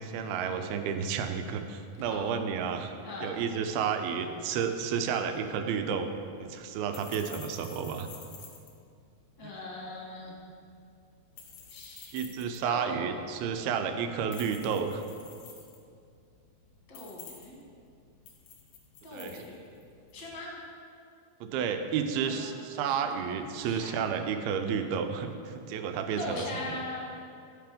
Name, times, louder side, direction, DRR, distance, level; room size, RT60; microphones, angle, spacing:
voice 1, 0.0-2.9 3.2-6.1 6.4-8.1 9.4-9.5 12.1-15.0 19.1-19.4 21.4-26.7, right 7 dB, 80° right, 7 dB, 2.5 m, -31 dB
voice 2, 3.0-3.3 9.4-10.4 11.7-13.1 13.5-14.1 16.9-17.6 19.0-19.6 20.1-20.5 22.2-22.6 23.1-23.3 23.6-24.1 26.2-27.0, left 1 dB, 45° left, -3 dB, 1.6 m, -40 dB
sound 1, 5.3-20.4, left 6 dB, 70° left, 1.7 m, -52 dB
11.0 x 5.9 x 5.0 m, 2.4 s
omnidirectional pair, 4.5 m